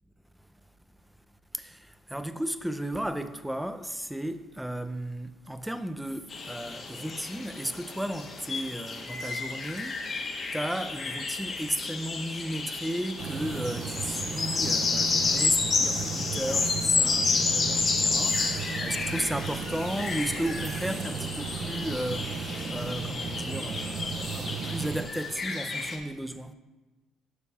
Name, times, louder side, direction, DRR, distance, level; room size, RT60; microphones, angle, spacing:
voice 1, 1.5-26.5, right 1 dB, 5° right, 0.5 m, -34 dB
sound 1, 6.3-26.0, left 4 dB, 40° left, 1.4 m, -31 dB
sound 2, 13.2-25.1, right 6 dB, 60° right, 0.4 m, -35 dB
11.0 x 6.7 x 2.4 m
cardioid pair, 90°, 0 cm